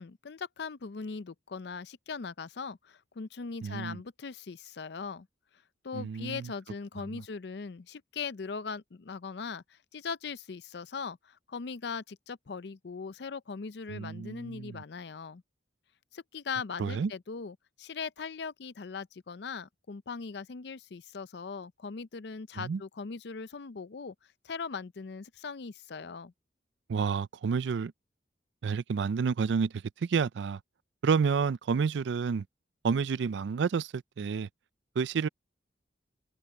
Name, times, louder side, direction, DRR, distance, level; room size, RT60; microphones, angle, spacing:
voice 1, 0.0-5.3 5.8-15.4 16.1-24.1 24.4-26.3, left 5 dB, 65° left, 0.5 m, -40 dB
voice 2, 3.6-4.0 5.9-6.5 7.1-7.2 13.9-14.8 16.8-17.1 22.6-22.8 26.9-27.9 28.6-30.6 31.0-32.4 32.8-34.5 35.0-35.3, right 5 dB, 70° right, 0.4 m, -30 dB
head